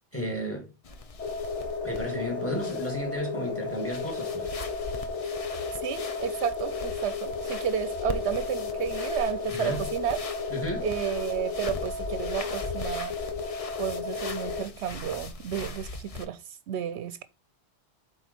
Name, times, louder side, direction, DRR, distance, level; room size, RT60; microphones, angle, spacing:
voice 1, 0.1-0.7 1.8-4.5 9.5-9.9 10.5-10.9, equal, 10° left, 2.1 m, -33 dB
sound 1, 0.8-16.3, left 3 dB, 40° left, 0.6 m, -40 dB
sound 2, 1.2-14.6, left 4 dB, 85° left, 1.4 m, -33 dB
voice 2, 5.8-10.2 10.8-13.1 13.8-17.2, right 9 dB, 75° right, 0.8 m, -32 dB
8.1 x 4.1 x 4.4 m
omnidirectional pair, 1.2 m